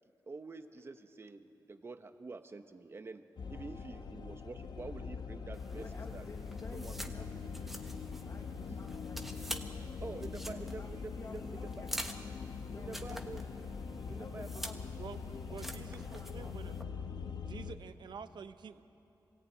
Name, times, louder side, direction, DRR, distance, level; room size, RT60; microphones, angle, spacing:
voice 1, 0.3-3.2 3.5-5.8 6.1-6.3 6.7-7.1 8.7-8.8 10.0-11.7 12.7-13.4 14.1-14.8, right 3 dB, 35° right, 8 dB, 1.0 m, -47 dB
sound 1, 3.4-17.7, left 5 dB, 65° left, 1.1 m, -43 dB
sound 2, 5.5-16.8, equal, 5° right, 1.1 m, -47 dB
voice 2, 5.7-7.7 8.2-9.7 10.0-12.2 12.7-13.3 14.0-15.5 15.8-16.8, left 3 dB, 40° left, 1 dB, 1.2 m, -53 dB
voice 3, 15.0-16.7 17.3-18.8, right 6 dB, 80° right, 10 dB, 0.9 m, -48 dB
26.0 x 18.0 x 9.2 m, 2.9 s
wide cardioid pair, 175°, 8 cm